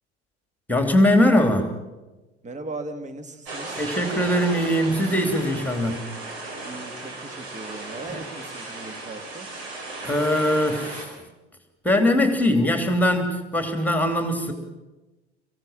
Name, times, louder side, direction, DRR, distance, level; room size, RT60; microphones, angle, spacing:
voice 1, 0.7-1.7 3.8-6.0 8.1-8.2 10.0-11.1 11.8-14.5, left 1 dB, 5° left, 6 dB, 3.0 m, -21 dB
voice 2, 2.4-3.8 6.6-9.5, right 2 dB, 20° right, 8 dB, 2.1 m, -38 dB
sound 1, 3.5-11.1, right 2 dB, 60° right, 5.1 m, -36 dB
25.5 x 16.0 x 7.4 m, 1.1 s
figure-of-eight pair, 75°, 35 cm